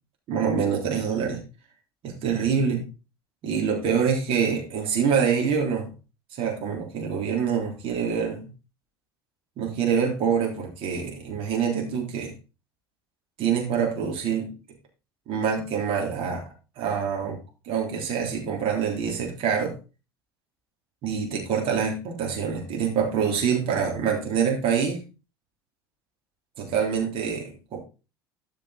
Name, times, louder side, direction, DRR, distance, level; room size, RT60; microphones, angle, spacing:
voice 1, 0.3-1.4 2.0-2.8 3.4-5.9 6.3-8.5 9.6-12.3 13.4-14.5 15.3-16.5 16.8-17.4 17.6-19.8 21.0-25.0 26.6-27.8, right 7 dB, 45° right, 0 dB, 3.2 m, -25 dB
12.5 x 5.2 x 4.0 m, 0.31 s
figure-of-eight pair, 70°, 12 cm